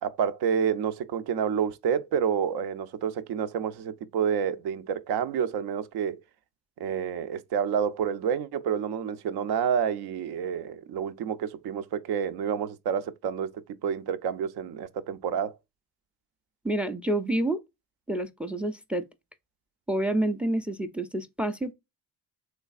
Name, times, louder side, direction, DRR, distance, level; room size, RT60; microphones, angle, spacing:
voice 1, 0.0-6.2 6.8-15.5, right 7 dB, 75° right, 0.6 m, -29 dB
voice 2, 16.6-17.6 18.1-19.0 19.9-21.7, right 1 dB, 5° right, 0.4 m, -28 dB
3.3 x 3.2 x 2.4 m
cardioid pair, 90°, 39 cm